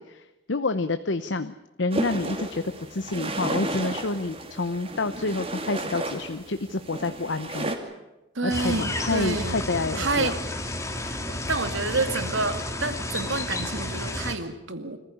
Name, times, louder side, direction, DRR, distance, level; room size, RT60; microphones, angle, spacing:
voice 1, 0.0-1.5 1.8-7.7 8.4-10.3, left 3 dB, 65° left, 10 dB, 0.9 m, -28 dB
sound 1, 1.9-7.8, right 1 dB, 30° right, 2.6 m, -33 dB
voice 2, 8.4-9.6 9.9-10.4 11.0-15.0, right 3 dB, 75° right, 9 dB, 2.3 m, -29 dB
sound 2, 8.5-14.3, left 1 dB, 15° left, 2.2 m, -31 dB
26.0 x 15.0 x 9.9 m, 1.0 s
head